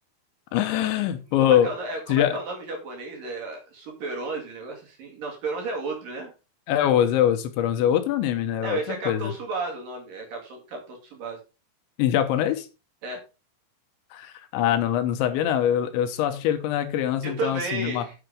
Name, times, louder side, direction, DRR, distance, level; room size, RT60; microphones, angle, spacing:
voice 1, 0.5-1.7 2.1-2.4 6.7-9.3 12.0-12.7 14.1-18.1, left 10 dB, 80° left, 9 dB, 3.1 m, -23 dB
voice 2, 1.4-6.3 8.6-11.4 13.0-13.2 17.2-18.1, right 3 dB, 55° right, 1 dB, 3.5 m, -33 dB
8.0 x 6.9 x 5.1 m, 0.31 s
omnidirectional pair, 5.5 m